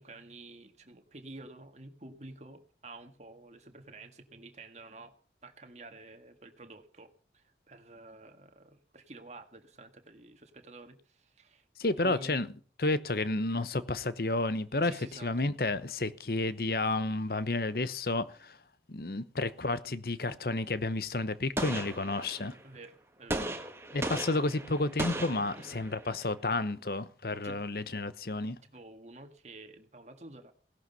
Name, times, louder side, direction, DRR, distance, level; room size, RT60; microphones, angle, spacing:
voice 1, 0.0-5.1 5.4-11.6 12.0-12.5 14.8-15.3 22.6-23.5 24.0-24.2 25.4-25.7 27.4-27.6 28.6-30.5, right 2 dB, 40° right, 1.8 m, -50 dB
voice 2, 11.8-12.5 12.8-14.9 15.2-18.6 18.9-22.6 23.9-28.6, left 2 dB, 55° left, 0.9 m, -31 dB
Gunshot gunfire, 21.6-22.6 23.3-26.1, right 1 dB, 15° right, 1.6 m, -36 dB
17.0 x 11.5 x 5.5 m
head